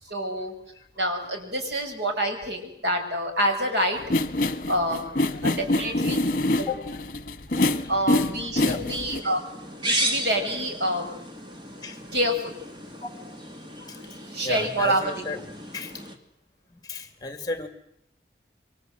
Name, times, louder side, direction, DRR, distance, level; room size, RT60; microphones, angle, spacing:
voice 1, 0.1-0.5 1.0-4.0 4.7-6.2 6.6-6.7 7.9-9.4 9.8-11.2 12.1-12.6 14.3-15.2, equal, 80° right, 4 dB, 6.6 m, -27 dB
sound 1, 4.0-9.2, left 2 dB, 50° left, 1.5 m, -25 dB
voice 2, 7.6-8.2 8.5-8.9 11.8-12.0 13.0-13.1 13.9-14.1 14.4-15.4 15.7-16.0 16.7-17.7, left 2 dB, 20° left, 8 dB, 2.7 m, -35 dB
sound 2, 8.8-16.2, right 1 dB, 25° right, 2.8 m, -34 dB
28.0 x 24.0 x 7.8 m, 0.75 s
head